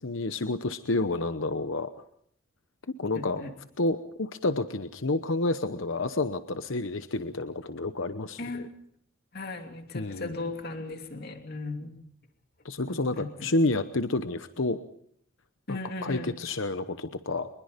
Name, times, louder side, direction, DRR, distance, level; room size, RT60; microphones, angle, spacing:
voice 1, 0.0-1.9 3.0-3.4 3.8-8.7 9.9-10.4 12.6-14.8 15.7-17.5, left 2 dB, 70° left, 10 dB, 1.0 m, -29 dB
voice 2, 3.1-3.5 8.4-8.7 9.3-11.9 12.9-13.5 15.7-16.3, left 2 dB, 50° left, 5 dB, 2.9 m, -37 dB
25.0 x 21.5 x 5.2 m, 0.69 s
head